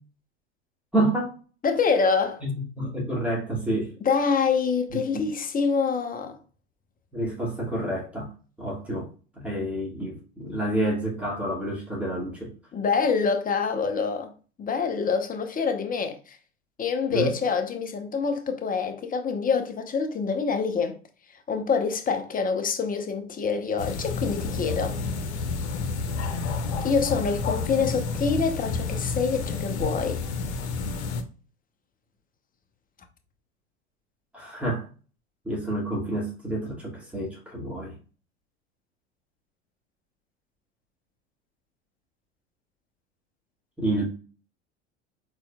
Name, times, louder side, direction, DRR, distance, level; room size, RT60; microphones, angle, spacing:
voice 1, 0.9-1.4 2.4-3.9 4.9-5.3 7.1-8.3 8.6-9.1 9.4-12.5 17.1-17.3 34.3-34.9 35.4-37.9 43.8-44.1, right 1 dB, 5° right, 2.4 m, -29 dB
voice 2, 1.6-2.4 4.0-6.4 12.7-14.3 14.6-16.4 16.8-21.0 21.5-25.0 26.8-30.2, left 5 dB, 25° left, 1.0 m, -26 dB
sound 1, 23.8-31.2, left 4 dB, 75° left, 0.9 m, -30 dB
4.5 x 4.3 x 2.3 m
hypercardioid pair, 80°, 34 cm